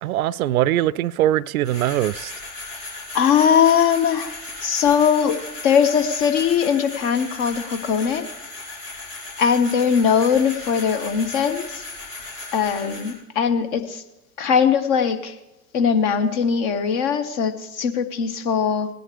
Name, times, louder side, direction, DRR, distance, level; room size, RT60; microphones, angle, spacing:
voice 1, 0.0-2.3, right 13 dB, 65° right, 0.5 m, -21 dB
sound 1, 1.6-13.1, left 2 dB, 80° left, 4.8 m, -36 dB
voice 2, 3.1-4.3 4.6-5.4 5.6-8.2 9.4-11.8 12.5-14.0 14.4-15.4 15.7-18.9, left 7 dB, 50° left, 1.5 m, -20 dB
18.0 x 10.5 x 3.3 m
hypercardioid pair, 100°, 46 cm